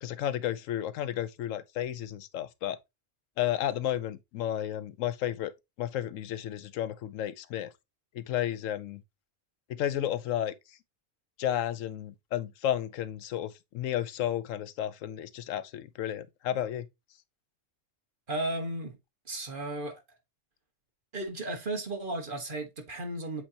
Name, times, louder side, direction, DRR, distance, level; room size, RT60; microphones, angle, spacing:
voice 1, 0.0-2.8 3.4-5.5 5.8-7.7 8.1-9.0 9.7-10.5 11.4-16.9, left 11 dB, 80° left, 1.0 m, -32 dB
voice 2, 18.3-19.0 19.3-20.0 21.1-23.4, right 2 dB, 40° right, 1.6 m, -34 dB
7.8 x 4.3 x 2.8 m
omnidirectional pair, 1.3 m